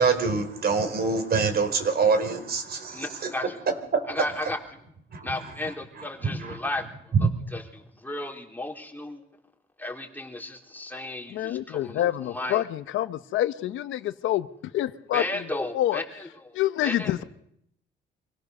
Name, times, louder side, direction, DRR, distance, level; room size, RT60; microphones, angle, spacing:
voice 1, 0.0-3.3 3.7-4.3 5.1-5.5 6.0-6.6 7.1-7.3, right 5 dB, 50° right, 4.3 m, -25 dB
voice 2, 2.9-3.6 4.1-4.6 5.2-7.1 7.5-9.2 9.8-12.6 15.1-16.5 16.8-17.2, left 1 dB, 10° left, 4.1 m, -34 dB
voice 3, 11.3-14.5 14.7-15.5 15.7-16.0 16.5-17.2, left 13 dB, 85° left, 1.1 m, -27 dB
25.0 x 17.5 x 6.7 m
cardioid pair, 90°, 20 cm